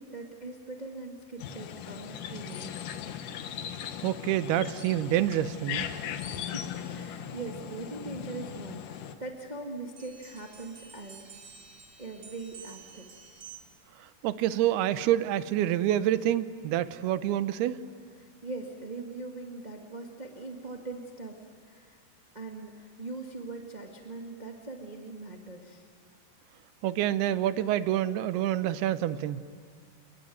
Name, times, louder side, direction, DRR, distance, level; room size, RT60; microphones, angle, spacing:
voice 1, 0.0-2.7 6.4-11.2 12.0-13.1 18.2-22.0 22.3-25.9, right 3 dB, 25° right, 1 dB, 0.8 m, -41 dB
sound 1, 1.4-9.2, left 9 dB, 65° left, 2.4 m, -38 dB
voice 2, 4.0-5.9 14.2-17.8 26.8-29.4, right 12 dB, 80° right, 13 dB, 2.7 m, -27 dB
sound 2, 9.9-13.9, right 6 dB, 65° right, 0.8 m, -50 dB
29.0 x 21.0 x 9.4 m, 2.1 s
omnidirectional pair, 4.6 m